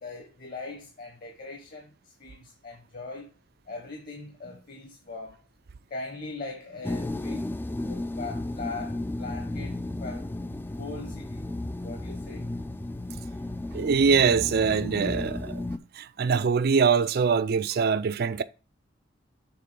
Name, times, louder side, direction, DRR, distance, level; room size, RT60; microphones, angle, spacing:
voice 1, 0.0-3.3 3.7-5.4 5.9-7.5 7.8-10.3 10.8-11.5 11.8-12.5, left 3 dB, 50° left, 1.4 m, -40 dB
sound 1, 6.8-15.8, left 1 dB, 10° left, 0.4 m, -34 dB
voice 2, 13.7-15.7 16.0-18.4, right 5 dB, 55° right, 0.4 m, -23 dB
6.9 x 3.7 x 5.2 m
head